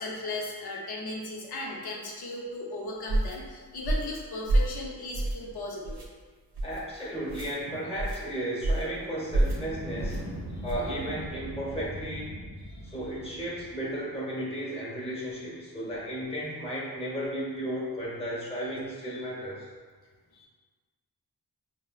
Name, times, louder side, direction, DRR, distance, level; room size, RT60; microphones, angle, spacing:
voice 1, 0.0-6.0 12.6-13.0 18.6-18.7 19.1-19.3 20.3-20.5, left 2 dB, 70° left, -2 dB, 0.7 m, -37 dB
sound 1, 3.1-3.4 3.8-4.1 4.5-4.8 5.1-5.5 5.8-6.1 6.5-6.8 7.3-7.5 8.0-8.2 8.6-8.9 9.3-9.6 10.0-10.2 10.6-10.9, right 1 dB, 80° right, 0.7 m, -27 dB
voice 2, 6.6-10.2 10.6-12.3 12.8-19.7, right 1 dB, 15° left, -6 dB, 0.8 m, -34 dB
sound 2, 9.1-13.9, equal, 20° right, 0.7 m, -41 dB
4.1 x 2.1 x 2.3 m, 1.5 s
wide cardioid pair, 135°, 39 cm